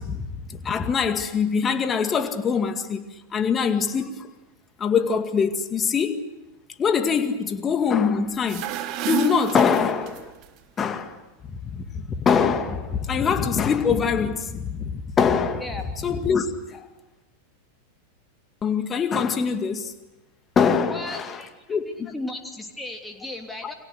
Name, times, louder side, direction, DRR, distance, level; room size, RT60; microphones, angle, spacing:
voice 1, 0.0-3.0 3.3-4.3 4.8-6.2 6.8-8.7 9.1-10.3 10.8-11.2 11.5-15.7 16.0-16.9 18.6-19.9 20.6-21.4 21.7-22.1 23.6-23.7, left 6 dB, 20° left, 2.1 m, -23 dB
sound 1, 8.3-10.5, right 11 dB, 40° right, 1.9 m, -31 dB
voice 2, 20.9-23.7, left 2 dB, 5° left, 3.0 m, -36 dB
30.0 x 25.0 x 6.6 m
figure-of-eight pair, 90°, 0 cm